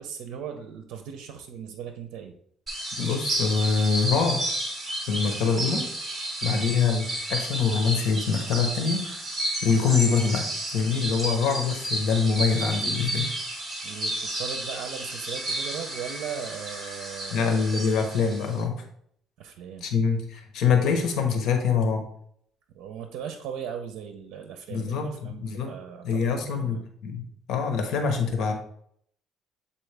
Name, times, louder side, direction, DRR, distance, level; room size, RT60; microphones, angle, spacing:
voice 1, 0.0-2.4 6.5-6.7 13.8-18.1 19.4-19.9 22.7-26.9, right 8 dB, 85° right, 7 dB, 0.6 m, -38 dB
sound 1, 2.7-18.6, right 1 dB, 15° right, 1.8 m, -32 dB
voice 2, 3.0-4.4 5.1-5.9 6.4-9.3 9.6-13.3 17.3-18.8 19.8-22.1 24.7-25.7 26.0-28.5, left 5 dB, 65° left, 5 dB, 1.1 m, -25 dB
sound 2, 6.4-7.4 9.4-10.4 12.4-13.4 15.3-16.4, right 1 dB, 35° right, 1.9 m, -43 dB
7.4 x 4.2 x 3.4 m, 0.67 s
cardioid pair, 155°, 0 cm